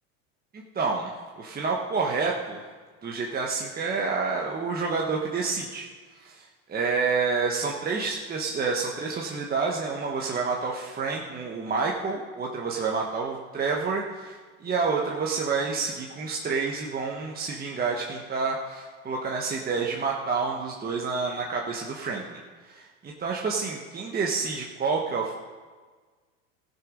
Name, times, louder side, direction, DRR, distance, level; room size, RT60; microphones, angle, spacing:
voice 1, 0.5-2.6 3.0-5.9 6.1-6.4 6.7-22.4 22.6-25.3, right 4 dB, 25° right, -1 dB, 1.3 m, -29 dB
16.0 x 6.8 x 5.3 m, 1.4 s
hypercardioid pair, 100°, 40 cm